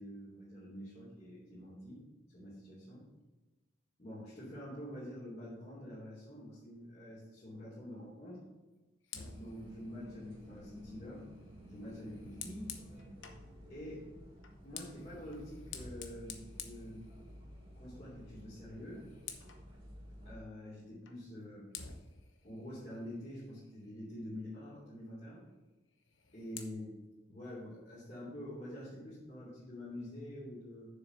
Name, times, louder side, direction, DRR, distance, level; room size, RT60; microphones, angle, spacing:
voice 1, 0.0-2.0 2.3-3.0 4.0-8.4 9.3-11.2 11.6-12.7 13.7-14.1 14.6-17.1 17.7-19.0 20.2-21.7 22.4-25.4 26.3-27.0 27.3-30.9, left 1 dB, 35° left, -10 dB, 3.0 m, -47 dB
Fire, 9.0-13.5 14.4-17.6 18.0-18.3 18.6-19.7 21.1-21.2 21.7-24.0 25.9-26.7, left 7 dB, 70° left, 1.0 m, -51 dB
sound 1, 9.1-20.3, equal, 25° right, 2.0 m, -53 dB
7.1 x 7.0 x 5.6 m, 1.2 s
head